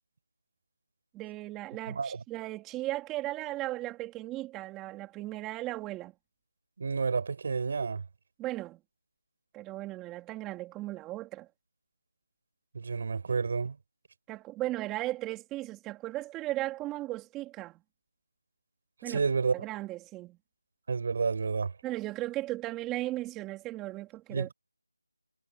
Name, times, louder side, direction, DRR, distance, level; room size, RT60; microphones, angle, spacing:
voice 1, 1.1-6.1 8.4-8.8 9.5-11.5 14.3-17.8 19.0-19.2 19.5-20.4 21.8-24.5, right 17 dB, 5° right, 3.2 m, -36 dB
voice 2, 1.9-2.2 6.8-8.0 12.7-13.8 19.0-19.5 20.9-21.7 24.3-24.5, right 5 dB, 35° right, 5.9 m, -30 dB
figure-of-eight pair, 170°, 0 cm